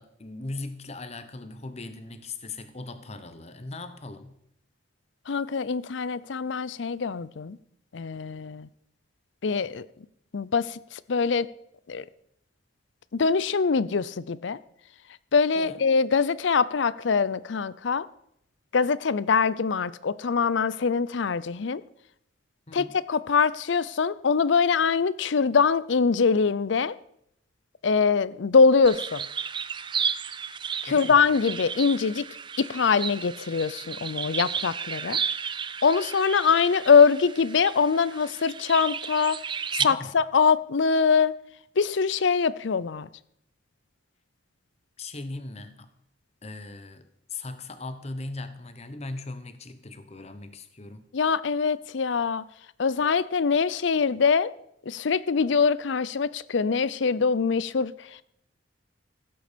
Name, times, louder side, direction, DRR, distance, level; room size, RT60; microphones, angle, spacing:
voice 1, 0.0-4.4 15.5-15.8 22.7-22.9 30.9-31.2 39.8-40.2 45.0-45.9 46.4-51.0, left 2 dB, 35° left, 10 dB, 1.0 m, -39 dB
voice 2, 5.3-7.6 7.9-8.7 9.4-9.9 10.3-11.5 11.9-12.0 13.1-14.6 15.3-18.1 18.7-21.8 22.7-27.0 27.8-29.3 30.8-32.2 32.6-35.2 35.8-39.4 39.7-41.3 41.8-43.1 51.1-52.4 52.8-54.5 54.9-58.2, left 5 dB, 65° left, 18 dB, 0.5 m, -23 dB
sound 1, 28.8-39.8, right 7 dB, 25° right, 0.4 m, -33 dB
15.5 x 7.8 x 5.2 m, 0.74 s
head